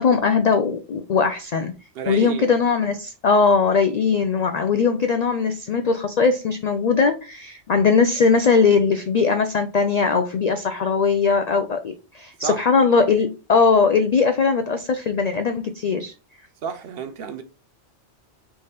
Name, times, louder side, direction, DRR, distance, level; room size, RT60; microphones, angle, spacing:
voice 1, 0.0-1.7 2.1-16.1, left 5 dB, 65° left, 0.4 m, -20 dB
voice 2, 1.9-2.5 12.4-12.6 16.6-17.4, right 6 dB, 65° right, 0.7 m, -30 dB
3.5 x 3.3 x 4.1 m
omnidirectional pair, 1.2 m